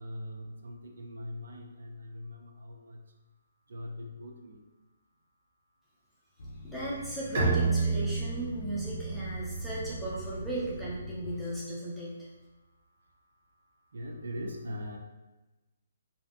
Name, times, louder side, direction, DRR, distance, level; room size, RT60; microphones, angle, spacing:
voice 1, 0.0-3.0 3.7-4.6 13.9-15.0, left 1 dB, 80° right, 2 dB, 0.4 m, -41 dB
sound 1, 6.4-11.5, equal, 65° left, 0.3 m, -44 dB
voice 2, 6.6-12.3, right 1 dB, ahead, -10 dB, 0.5 m, -36 dB
Bowed string instrument, 7.3-10.8, right 4 dB, 50° right, 1.2 m, -31 dB
2.6 x 2.1 x 2.4 m, 1.1 s
hypercardioid pair, 160°, 0 cm